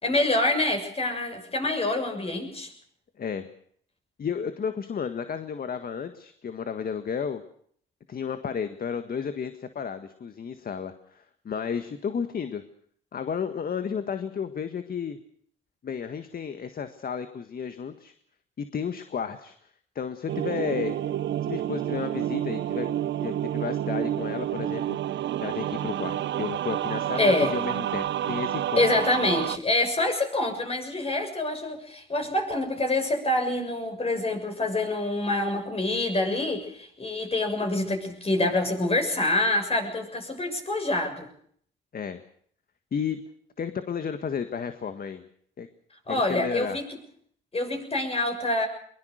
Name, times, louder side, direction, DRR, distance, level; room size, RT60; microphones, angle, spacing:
voice 1, 0.0-2.7 27.2-27.5 28.8-41.3 46.1-46.8 47.5-48.7, left 2 dB, 30° left, 4 dB, 6.9 m, -26 dB
voice 2, 4.2-7.4 8.1-12.6 13.1-15.2 15.8-18.1 18.6-19.6 20.0-21.0 21.4-22.9 23.2-25.0 25.4-28.9 41.9-42.2 42.9-43.2 43.6-45.2 45.6-45.7 46.1-46.8, left 6 dB, 50° left, 9 dB, 1.8 m, -32 dB
sound 1, 20.3-29.6, right 11 dB, 65° right, 0.9 m, -29 dB
22.5 x 22.0 x 6.6 m, 0.62 s
cardioid pair, 90°, 20 cm